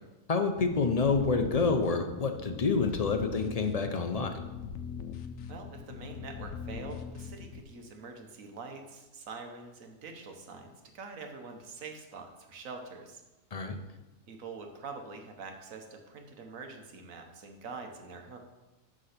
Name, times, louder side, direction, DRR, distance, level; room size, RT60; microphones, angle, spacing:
voice 1, 0.3-4.4 13.5-13.8, left 4 dB, 45° left, 6 dB, 0.5 m, -28 dB
sound 1, 0.6-7.6, left 7 dB, 75° left, 1.0 m, -41 dB
voice 2, 5.5-13.2 14.3-18.4, right 4 dB, 75° right, 4 dB, 1.5 m, -45 dB
9.9 x 3.8 x 6.6 m, 1.1 s
omnidirectional pair, 1.4 m